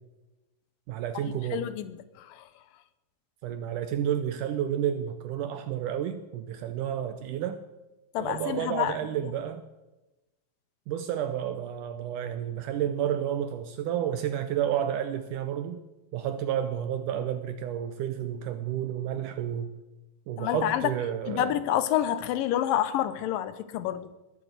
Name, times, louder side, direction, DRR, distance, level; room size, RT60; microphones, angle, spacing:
voice 1, 0.9-1.7 3.4-7.6 8.2-9.6 10.9-15.8 16.1-19.7 20.3-21.6, right 10 dB, 75° right, 10 dB, 2.1 m, -31 dB
voice 2, 1.5-2.4 8.1-9.0 9.2-9.3 20.4-20.9 21.3-24.1, left 12 dB, 75° left, 14 dB, 2.4 m, -28 dB
20.5 x 8.1 x 8.1 m, 1.0 s
omnidirectional pair, 4.1 m